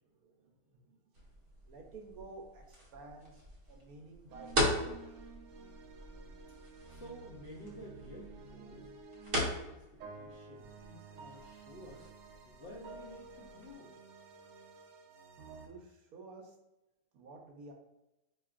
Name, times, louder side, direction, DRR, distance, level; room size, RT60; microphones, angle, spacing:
sound 1, 1.1-13.8, equal, 40° right, 0.9 m, -40 dB
voice 1, 1.7-3.4 3.7-5.0 15.6-16.5 17.1-17.7, right 3 dB, 70° right, 1 dB, 1.0 m, -51 dB
sound 2, 4.3-15.7, right 4 dB, 85° right, 0.6 m, -52 dB
voice 2, 6.9-8.9 9.3-12.1 12.4-13.9, left 1 dB, 55° left, -5 dB, 0.7 m, -52 dB
4.5 x 2.9 x 2.4 m, 0.96 s
omnidirectional pair, 1.7 m